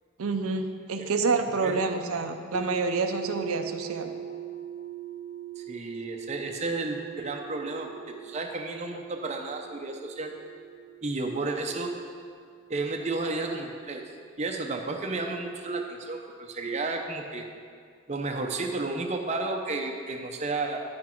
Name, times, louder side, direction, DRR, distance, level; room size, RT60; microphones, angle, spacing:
voice 1, 0.2-4.1, right 4 dB, 90° right, 6 dB, 0.6 m, -28 dB
sound 1, 2.5-14.5, right 8 dB, 30° left, 0.4 m, -42 dB
voice 2, 5.6-10.3 11.0-11.9 12.7-14.0 14.4-17.5 18.1-20.8, right 3 dB, 30° right, 3 dB, 0.6 m, -32 dB
9.5 x 6.1 x 4.5 m, 2.1 s
head